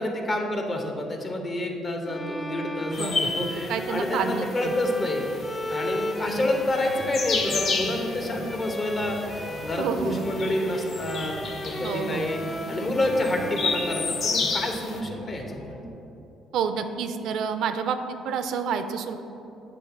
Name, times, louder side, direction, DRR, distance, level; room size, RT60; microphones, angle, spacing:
voice 1, 0.0-5.3 5.7-11.3 11.6-15.7, left 1 dB, 40° left, 3 dB, 1.0 m, -28 dB
Bowed string instrument, 2.0-9.9 10.2-15.0, left 1 dB, 10° left, 0.4 m, -36 dB
sound 1, 2.9-15.0, left 4 dB, 60° left, 0.7 m, -32 dB
voice 2, 3.0-3.3 3.7-4.7 9.8-10.2 11.8-12.3 16.5-19.2, right 6 dB, 70° right, 8 dB, 0.4 m, -29 dB
sound 2, 6.3-15.9, equal, 80° left, 1.4 m, -43 dB
7.7 x 3.0 x 5.8 m, 2.8 s
supercardioid pair, 75°, 0 cm